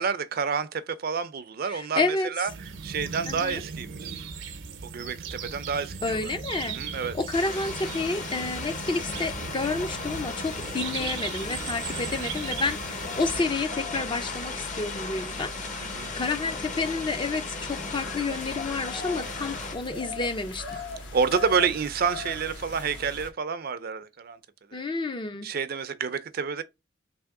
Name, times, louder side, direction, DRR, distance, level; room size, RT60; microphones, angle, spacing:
voice 1, 0.0-2.0 2.4-2.5 2.8-4.3 4.9-6.2 6.6-7.2 12.1-12.3 15.9-16.1 21.1-24.4 24.7-24.8 25.4-26.6, right 6 dB, 55° right, 0.5 m, -29 dB
voice 2, 1.6-2.3 3.2-3.6 6.0-20.7 24.7-25.5, left 3 dB, 25° left, 0.5 m, -30 dB
sound 1, 2.5-13.4, right 5 dB, 90° right, 0.7 m, -37 dB
sound 2, 7.3-19.7, left 3 dB, 45° left, 1.0 m, -36 dB
sound 3, 12.3-23.3, left 2 dB, 70° left, 1.4 m, -40 dB
3.5 x 2.9 x 4.7 m
head